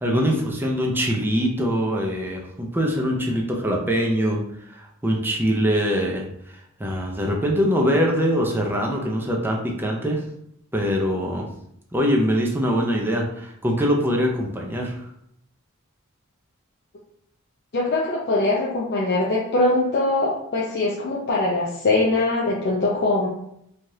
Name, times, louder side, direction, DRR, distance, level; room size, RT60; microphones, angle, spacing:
voice 1, 0.0-4.4 4.7-10.2 10.7-11.5 11.9-15.1, equal, 10° right, -1 dB, 0.4 m, -23 dB
voice 2, 17.7-23.3, left 2 dB, 50° left, -4 dB, 0.5 m, -22 dB
3.2 x 2.3 x 2.7 m, 0.73 s
head